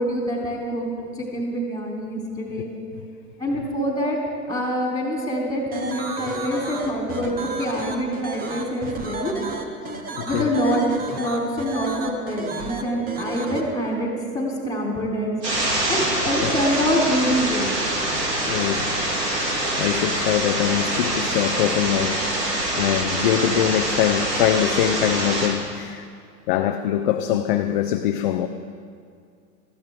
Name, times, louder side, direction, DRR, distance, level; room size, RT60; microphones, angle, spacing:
voice 1, 0.0-2.7 3.4-4.2 4.5-9.4 10.2-10.9 11.2-15.3 15.9-17.7, equal, 5° left, -2 dB, 3.5 m, -25 dB
sound 1, 5.7-13.6, right 3 dB, 20° right, 1.2 m, -33 dB
voice 2, 10.2-10.5 16.4-16.5 18.5-18.9 19.2-26.1 26.5-28.5, left 11 dB, 35° left, 7 dB, 0.5 m, -23 dB
sound 2, 15.4-25.5, right 1 dB, 80° right, 3.9 m, -25 dB
19.5 x 14.0 x 3.7 m, 2.3 s
hypercardioid pair, 115°, 48 cm